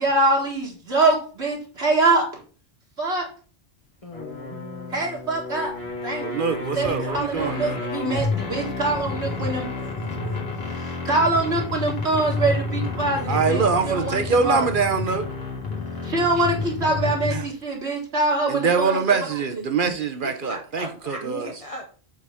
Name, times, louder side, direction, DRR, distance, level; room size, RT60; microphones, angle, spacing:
voice 1, 0.0-2.4 3.0-3.3 4.9-5.7 6.0-6.3 6.8-10.4 10.7-14.7 16.0-19.0 19.5-19.6 21.2-21.4, right 2 dB, 75° right, 2.2 m, -24 dB
voice 2, 4.0-5.0 9.3-9.4 19.9-21.9, left 1 dB, 35° left, 1.0 m, -38 dB
sound 1, 4.1-17.5, left 3 dB, 70° left, 1.8 m, -30 dB
voice 3, 6.2-7.8 13.3-15.3 17.3-17.4 18.5-21.5, right 5 dB, 55° right, 0.9 m, -24 dB
7.3 x 3.9 x 5.5 m
omnidirectional pair, 1.1 m